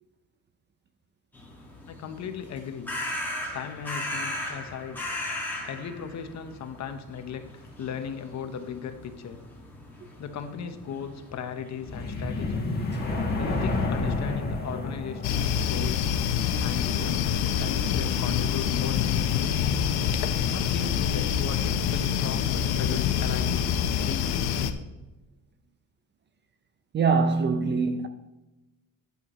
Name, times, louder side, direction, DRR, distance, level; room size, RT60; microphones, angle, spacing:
sound 1, 1.3-13.4, left 1 dB, 5° left, 1.9 m, -38 dB
voice 1, 1.9-2.9 3.5-5.0 5.6-7.4 7.8-9.4 10.2-12.6 13.3-16.2 16.6-17.3 17.6-19.6 20.4-23.7 24.0-24.7, left 7 dB, 50° left, 0.9 m, -37 dB
sound 2, 11.9-15.8, left 2 dB, 25° left, 1.5 m, -29 dB
sound 3, 15.2-24.7, left 8 dB, 90° left, 0.8 m, -26 dB
voice 2, 26.9-28.1, right 4 dB, 30° right, 0.5 m, -23 dB
10.5 x 8.1 x 3.0 m
cardioid pair, 145°, 36 cm